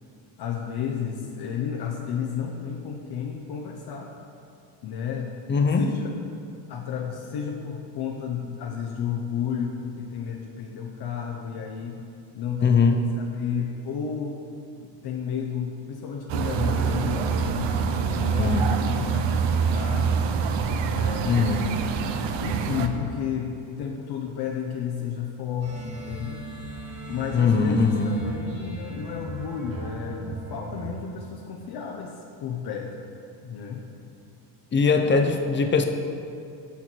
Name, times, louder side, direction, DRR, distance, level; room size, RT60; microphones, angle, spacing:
voice 1, 0.4-4.1 4.8-5.3 5.8-6.1 6.7-12.0 12.3-14.4 14.8-20.4 20.9-21.7 22.4-26.4 27.1-33.1 33.4-33.8 35.0-35.1, left 7 dB, 55° left, 1 dB, 0.8 m, -32 dB
voice 2, 5.5-5.9 12.6-13.0 18.4-18.7 21.3-21.8 27.3-28.2 34.7-35.8, left 4 dB, 25° left, 5 dB, 0.6 m, -21 dB
sound 1, 16.3-22.9, right 6 dB, 75° right, 0.7 m, -25 dB
sound 2, 25.6-30.8, right 2 dB, 30° right, 1.8 m, -38 dB
12.5 x 4.5 x 4.5 m, 2.5 s
cardioid pair, 145°, 45 cm